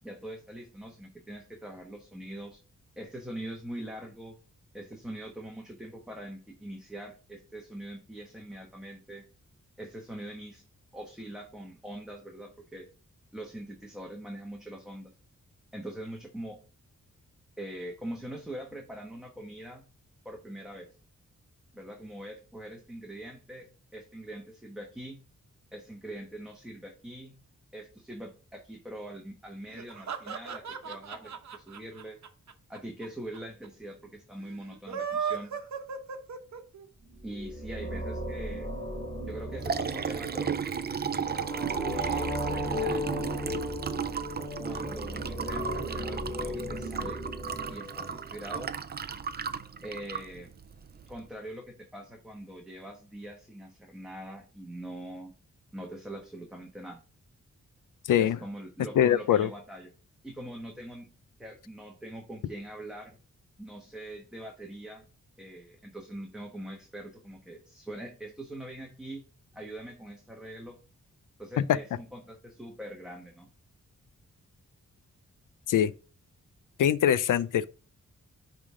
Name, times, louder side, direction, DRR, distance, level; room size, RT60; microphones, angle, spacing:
voice 1, 0.0-2.6 3.0-4.4 4.7-9.2 9.8-10.6 10.9-12.9 13.3-15.1 15.7-16.6 17.6-19.9 20.2-20.9 21.7-25.2 25.7-27.4 27.7-32.2 32.7-35.6 37.2-38.7 39.3-40.6 41.9-43.5 44.6-47.2 47.7-48.7 49.8-50.5 51.1-55.3 55.7-57.0 58.2-59.9 60.2-61.1 61.4-63.2 63.6-65.1 65.4-69.2 69.5-70.8 71.4-73.5, right 1 dB, ahead, 1.2 m, -43 dB
sound 1, 29.7-33.1 33.3-33.4 33.6-33.7 34.7-36.8, right 7 dB, 65° right, 1.0 m, -35 dB
sound 2, 37.1-48.3, equal, 20° left, 4.1 m, -36 dB
Liquid, 39.3-51.2, right 6 dB, 35° right, 0.5 m, -35 dB
voice 2, 59.0-59.5 75.7-75.9 76.8-77.7, left 10 dB, 90° left, 0.5 m, -23 dB
9.9 x 3.6 x 3.7 m
wide cardioid pair, 110°, 31 cm